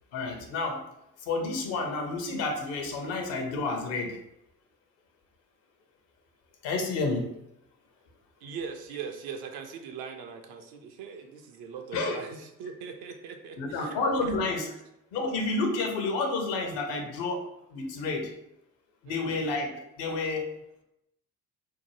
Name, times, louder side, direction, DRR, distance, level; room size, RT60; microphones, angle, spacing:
voice 1, 0.1-0.8 1.3-4.2 6.6-7.3 11.9-12.2 13.6-14.7 15.1-17.5 17.7-18.3 19.0-20.5, left 3 dB, 65° left, 3 dB, 0.7 m, -30 dB
voice 2, 8.4-14.0 19.0-19.4, right 6 dB, 55° right, 5 dB, 0.5 m, -41 dB
2.7 x 2.1 x 3.1 m, 0.82 s
figure-of-eight pair, 45°, 46 cm